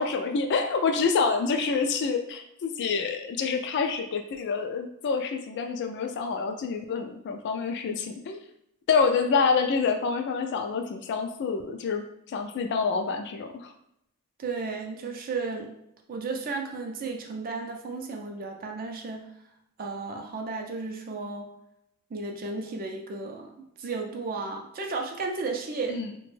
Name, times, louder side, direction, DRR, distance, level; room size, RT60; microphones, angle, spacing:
voice 1, 0.0-8.4 8.9-13.7 25.9-26.1, left 5 dB, 50° left, 6 dB, 0.3 m, -27 dB
voice 2, 14.4-15.7 16.1-19.3 19.8-21.5 22.1-23.5 23.8-26.0, right 3 dB, 40° right, 3 dB, 0.4 m, -33 dB
2.9 x 2.2 x 3.0 m, 0.78 s
head